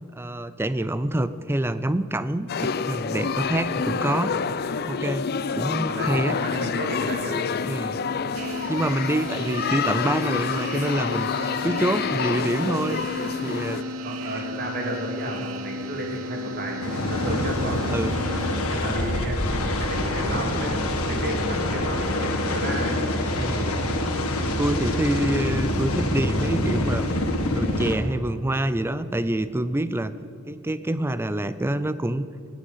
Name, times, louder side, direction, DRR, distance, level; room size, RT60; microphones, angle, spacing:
voice 1, 0.1-4.3 4.9-6.4 7.6-8.0 8.5-13.0 13.4-13.8 14.2-14.5 17.9-18.3 23.4-23.8 24.6-27.1 27.5-30.1 30.5-32.2, right 1 dB, 10° right, 14 dB, 0.4 m, -26 dB
sound 1, 2.5-13.8, left 6 dB, 45° left, 0.5 m, -28 dB
voice 2, 5.8-7.4 13.7-17.9 18.7-23.0 25.2-25.3, equal, 45° right, 1 dB, 2.5 m, -32 dB
sound 2, 8.3-18.6, equal, 75° right, 0.5 m, -35 dB
sound 3, 16.8-27.9, left 1 dB, 85° left, 1.6 m, -25 dB
17.5 x 9.0 x 5.7 m, 2.7 s
head